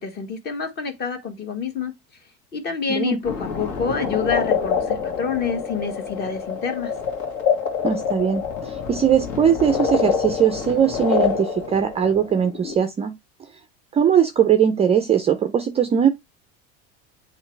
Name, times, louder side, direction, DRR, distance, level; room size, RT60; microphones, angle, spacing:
voice 1, 0.0-1.9 2.5-6.9, left 5 dB, 30° left, 1.5 m, -27 dB
voice 2, 2.9-3.2 7.8-13.1 13.9-16.1, right 8 dB, 20° right, 0.5 m, -20 dB
sound 1, 3.2-12.8, left 6 dB, 60° left, 2.1 m, -26 dB
7.9 x 3.2 x 4.5 m
cardioid pair, 150°, 33 cm